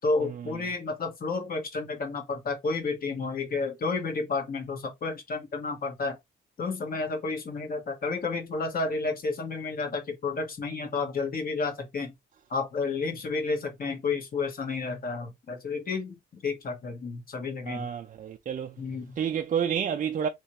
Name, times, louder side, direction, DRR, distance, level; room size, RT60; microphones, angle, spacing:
voice 1, 0.0-6.2 6.6-12.1 12.5-16.2 16.4-17.9 18.8-19.1, left 4 dB, 45° left, 1.5 m, -31 dB
voice 2, 17.7-18.7 19.2-20.3, right 8 dB, 40° right, 0.5 m, -29 dB
3.2 x 3.0 x 2.9 m
cardioid pair, 90°, 20 cm